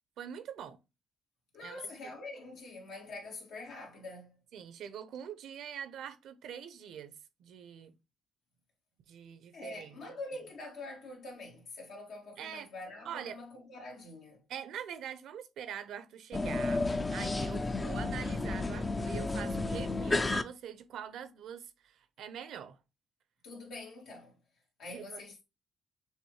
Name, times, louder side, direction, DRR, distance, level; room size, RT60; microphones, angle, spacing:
voice 1, 0.2-0.8 1.6-2.1 4.5-8.0 9.1-10.0 12.4-12.7 13.0-13.4 14.5-22.8 24.9-25.2, right 9 dB, 75° right, 0.7 m, -44 dB
voice 2, 1.5-4.4 9.5-14.4 23.4-24.4 24.8-25.3, left 2 dB, 80° left, 2.1 m, -45 dB
sound 1, 16.3-20.4, left 2 dB, 25° left, 0.5 m, -32 dB
6.6 x 2.6 x 3.1 m
cardioid pair, 90°, 0 cm